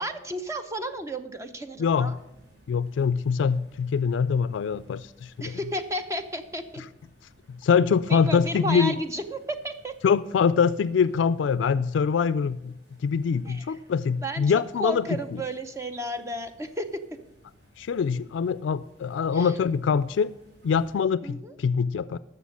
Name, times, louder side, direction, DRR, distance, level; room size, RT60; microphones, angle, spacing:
voice 1, 0.0-2.2 5.4-6.8 8.1-9.9 13.4-13.7 14.2-16.9 19.3-19.5 21.2-21.5, equal, 15° right, 0.7 m, -33 dB
voice 2, 1.8-2.1 2.7-5.6 7.5-9.0 10.0-12.8 13.0-15.1 17.8-20.3 20.6-22.2, left 6 dB, 80° left, 0.3 m, -24 dB
sound 1, 1.8-21.0, equal, 60° right, 4.5 m, -58 dB
12.5 x 6.7 x 6.4 m
head